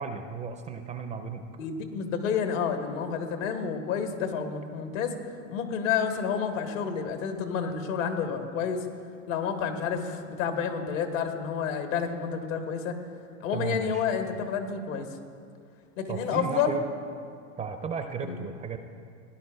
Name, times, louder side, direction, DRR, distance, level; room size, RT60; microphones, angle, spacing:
voice 1, 0.0-1.4 13.5-14.0 16.1-16.8 17.6-18.8, right 5 dB, 20° right, 7 dB, 0.4 m, -34 dB
voice 2, 1.5-5.2 5.5-8.8 9.3-13.0 13.4-15.1 16.0-16.7 18.3-18.4, left 7 dB, 75° left, 5 dB, 1.4 m, -29 dB
17.0 x 10.5 x 2.3 m, 2.3 s
hypercardioid pair, 110°, 39 cm